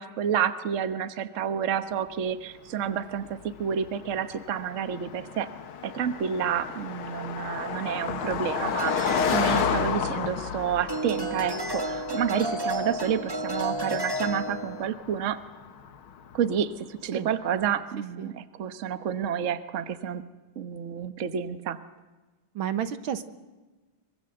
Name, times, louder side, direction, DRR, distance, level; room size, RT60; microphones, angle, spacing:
voice 1, 0.0-5.5 5.8-15.4 16.3-20.3 20.6-21.8, right 8 dB, 45° right, 11 dB, 1.3 m, -29 dB
Car passing by, 2.8-16.5, left 8 dB, 85° left, 2.2 m, -33 dB
sound 1, 8.8-10.5 10.9-14.9, equal, 15° right, 1.2 m, -31 dB
voice 2, 22.6-23.2, right 9 dB, 80° right, 11 dB, 2.0 m, -30 dB
24.5 x 24.0 x 7.9 m, 1.2 s
omnidirectional pair, 2.2 m